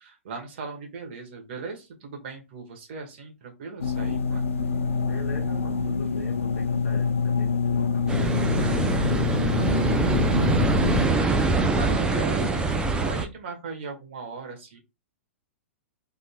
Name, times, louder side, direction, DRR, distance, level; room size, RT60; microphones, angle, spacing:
voice 1, 0.0-4.5 11.4-14.8, right 4 dB, 55° right, 1.1 m, -38 dB
sound 1, 3.8-11.1, left 5 dB, 80° left, 0.4 m, -26 dB
voice 2, 5.1-10.7, left 3 dB, 65° left, 1.0 m, -42 dB
sound 2, 8.1-13.3, right 3 dB, 10° right, 0.5 m, -24 dB
3.5 x 2.6 x 2.2 m
figure-of-eight pair, 110°, 7 cm